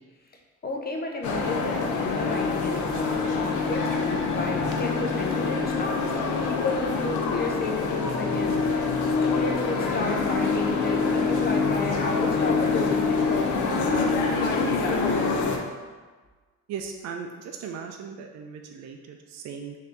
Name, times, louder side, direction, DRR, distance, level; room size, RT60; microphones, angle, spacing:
voice 1, 0.6-6.0 6.4-9.0 9.2-15.4, left 2 dB, 30° left, 2 dB, 0.6 m, -32 dB
sound 1, 1.2-15.6, left 4 dB, 75° left, 0.6 m, -25 dB
voice 2, 16.7-19.8, right 6 dB, 60° right, 3 dB, 0.4 m, -37 dB
3.4 x 2.7 x 3.9 m, 1.3 s
cardioid pair, 90°, 30 cm